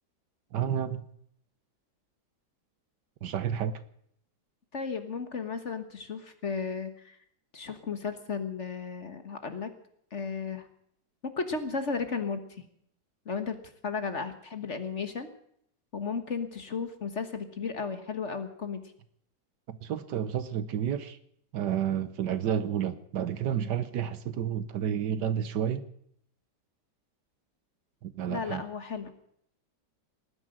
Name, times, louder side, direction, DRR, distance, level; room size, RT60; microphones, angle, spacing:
voice 1, 0.5-1.1 3.2-3.8 19.7-21.2 21.5-25.8 28.0-28.6, right 9 dB, 70° right, 1.5 m, -30 dB
voice 2, 4.7-7.2 7.5-9.7 10.1-10.7 11.4-12.6 13.2-13.6 13.8-15.3 15.9-18.8 28.3-29.1, left 5 dB, 40° left, 1.6 m, -34 dB
18.5 x 10.0 x 7.7 m
omnidirectional pair, 2.0 m